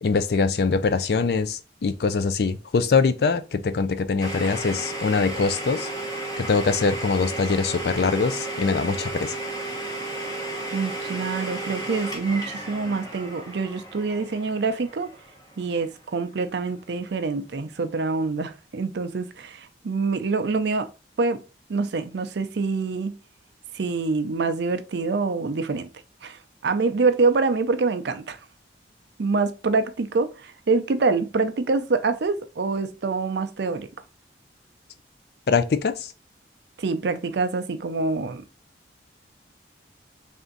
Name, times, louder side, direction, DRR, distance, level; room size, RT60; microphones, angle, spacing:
voice 1, 0.0-5.9 6.4-9.3 35.5-36.1, left 4 dB, 60° left, 0.4 m, -23 dB
Domestic sounds home sounds, 4.2-15.9, right 2 dB, 20° left, 1.0 m, -33 dB
voice 2, 10.7-15.1 15.6-20.9 21.2-21.4 21.7-23.2 23.7-25.9 26.2-28.4 29.2-33.9 36.8-38.4, right 4 dB, 70° right, 0.5 m, -25 dB
3.4 x 2.6 x 3.9 m
head